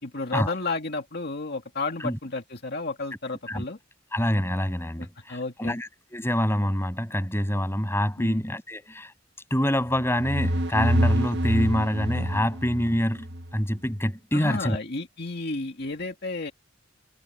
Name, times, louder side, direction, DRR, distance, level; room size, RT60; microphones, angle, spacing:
voice 1, 0.0-3.8 5.3-5.8 8.2-8.4 14.3-16.5, left 3 dB, 55° left, 2.1 m, -32 dB
voice 2, 4.1-9.1 9.5-14.8, equal, 15° left, 7.4 m, -26 dB
sound 1, 9.9-13.5, equal, 60° right, 1.8 m, -26 dB
head